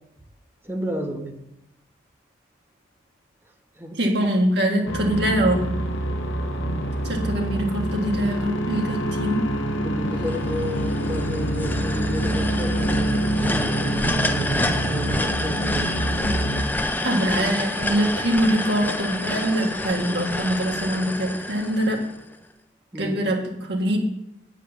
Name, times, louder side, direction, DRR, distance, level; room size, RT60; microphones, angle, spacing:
voice 1, 0.6-1.4 3.8-4.0 6.6-6.9 9.8-13.2 13.5-16.0 22.9-23.2, equal, 10° right, 3 dB, 1.0 m, -32 dB
voice 2, 3.9-5.7 7.0-9.5 17.0-22.0 23.0-24.0, right 1 dB, 55° right, 1 dB, 1.7 m, -23 dB
sound 1, 4.9-16.6, right 1 dB, 80° left, 1.0 m, -26 dB
sound 2, 10.2-22.3, left 1 dB, 10° left, 0.4 m, -28 dB
8.4 x 5.0 x 7.0 m, 0.82 s
head